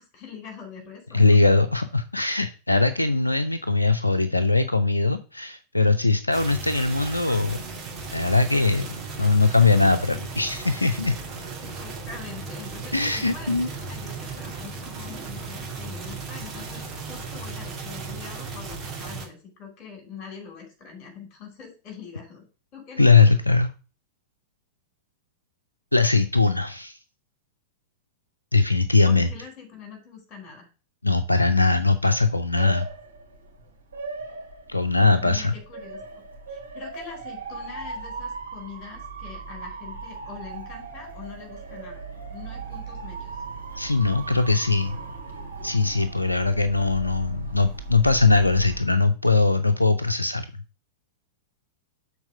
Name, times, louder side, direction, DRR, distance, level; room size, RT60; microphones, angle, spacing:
voice 1, 0.0-1.4 11.6-22.4 22.7-23.3 29.0-30.7 35.2-42.0 42.3-43.4, left 6 dB, 35° left, 2 dB, 4.4 m, -43 dB
voice 2, 1.1-7.6 8.1-8.9 9.2-11.2 12.9-13.7 23.0-23.7 25.9-27.0 28.5-29.3 31.0-32.9 34.7-35.5 43.8-45.0 45.6-50.5, left 3 dB, 85° left, 10 dB, 0.4 m, -21 dB
sound 1, 6.3-19.3, right 4 dB, 25° right, 2.4 m, -36 dB
Motor vehicle (road) / Siren, 32.0-48.8, right 3 dB, 75° right, 2.4 m, -38 dB
7.1 x 4.1 x 6.6 m, 0.34 s
figure-of-eight pair, 90°, 0 cm